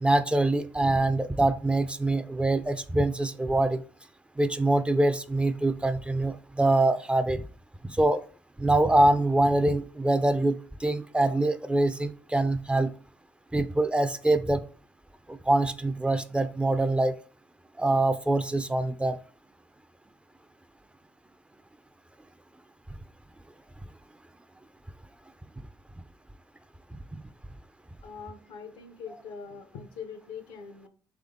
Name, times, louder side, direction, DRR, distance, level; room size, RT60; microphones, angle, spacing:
voice 1, 0.0-3.8 4.4-7.4 8.0-8.2 8.6-12.9 13.5-14.6 15.3-17.1 17.8-19.2, right 2 dB, 10° right, 11 dB, 0.4 m, -24 dB
voice 2, 28.0-30.9, left 6 dB, 80° left, 8 dB, 0.7 m, -42 dB
3.7 x 3.4 x 3.6 m, 0.40 s
supercardioid pair, 55°, 9 cm